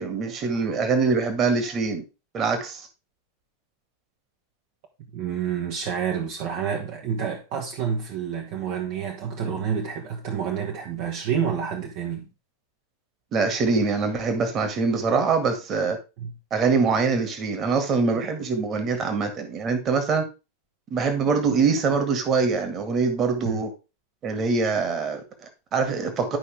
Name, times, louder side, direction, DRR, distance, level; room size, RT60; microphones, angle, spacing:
voice 1, 0.0-2.0 2.3-2.9 13.3-16.0 16.5-20.3 20.9-23.7 24.2-26.4, right 4 dB, 30° right, 2.0 m, -24 dB
voice 2, 5.1-12.2 16.2-16.3 23.4-23.6, right 7 dB, 45° right, 1.4 m, -28 dB
11.0 x 5.5 x 3.5 m
figure-of-eight pair, 90°, 0 cm